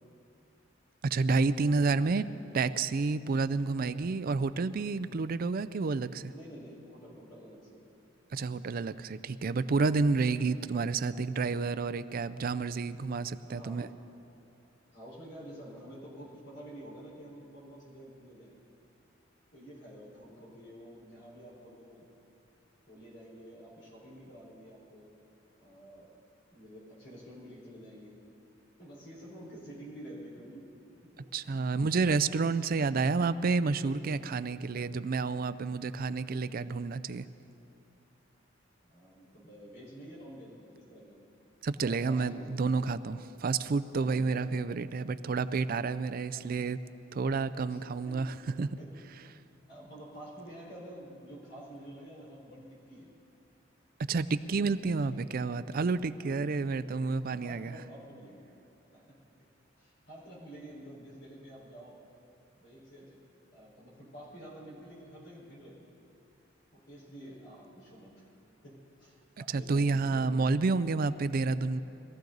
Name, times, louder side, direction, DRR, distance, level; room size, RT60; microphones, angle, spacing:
voice 1, 1.0-2.2 2.5-6.3 8.3-13.9 31.3-37.3 41.6-46.8 47.1-48.7 54.1-57.7 69.5-71.8, right 4 dB, 50° right, 14 dB, 0.4 m, -30 dB
voice 2, 6.3-7.8 13.4-14.0 14.9-18.6 19.5-22.1 22.9-25.2 25.6-26.2 26.5-28.2 28.8-30.7 31.0-31.3 38.8-41.2 41.8-42.5 44.0-44.5 46.3-46.6 47.7-48.2 48.8-48.9 49.7-53.1 54.6-54.8 55.1-55.2 56.0-56.6 57.2-58.4 58.9-59.2 59.8-62.0 62.5-63.2 63.5-66.0 66.7-68.3 68.6-70.3, equal, 65° left, -4 dB, 4.5 m, -49 dB
21.5 x 14.5 x 4.0 m, 2.7 s
head